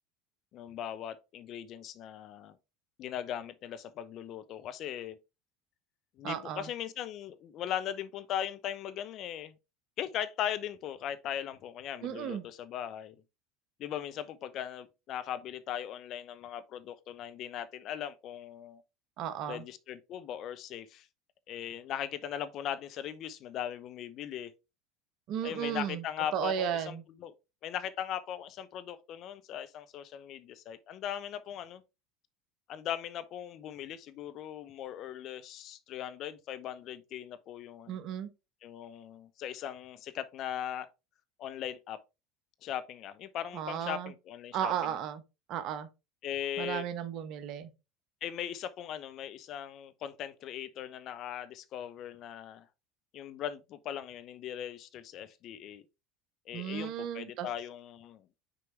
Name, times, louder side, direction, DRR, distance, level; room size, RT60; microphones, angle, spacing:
voice 1, 0.5-2.6 3.0-5.2 6.2-9.5 10.0-13.2 13.8-18.8 19.5-21.1 21.5-24.5 25.4-27.3 27.6-31.8 32.7-38.0 38.6-40.9 41.4-42.0 42.6-44.9 46.2-46.9 48.2-52.7 53.1-55.9 56.5-58.3, left 10 dB, 50° left, 0.7 m, -39 dB
voice 2, 6.2-6.7 12.0-12.5 19.2-19.6 25.3-26.0 26.3-27.0 37.9-38.3 43.5-44.1 44.5-45.2 45.5-45.9 46.6-47.7 56.5-57.5, right 9 dB, 50° right, 0.9 m, -34 dB
6.2 x 4.6 x 3.3 m
figure-of-eight pair, 70°, 0 cm